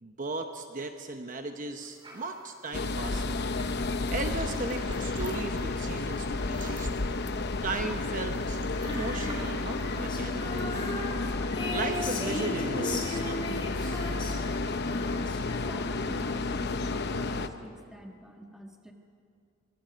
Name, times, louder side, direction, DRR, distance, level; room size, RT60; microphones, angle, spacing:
voice 1, 0.0-3.4 4.1-7.1 7.6-10.7 11.7-14.0, right 3 dB, 40° right, 5 dB, 0.9 m, -37 dB
sound 1, 1.8-10.1, right 2 dB, 25° right, 3.7 m, -50 dB
sound 2, 2.7-17.5, left 3 dB, 50° left, 0.8 m, -31 dB
Female singing, 8.7-16.1, left 1 dB, 25° left, 3.7 m, -37 dB
voice 2, 15.7-18.9, equal, ahead, 2 dB, 1.7 m, -46 dB
24.0 x 22.5 x 5.2 m, 2.4 s
head